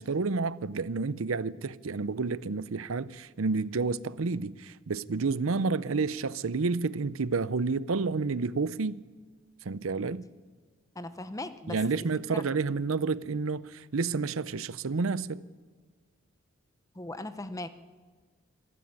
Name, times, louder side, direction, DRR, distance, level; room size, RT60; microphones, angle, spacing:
voice 1, 0.0-9.0 9.6-10.3 11.7-15.4, right 4 dB, 75° right, 0.7 m, -30 dB
voice 2, 11.0-11.8 12.3-12.4 17.0-17.7, left 2 dB, 15° left, 0.9 m, -38 dB
25.5 x 13.5 x 9.0 m
head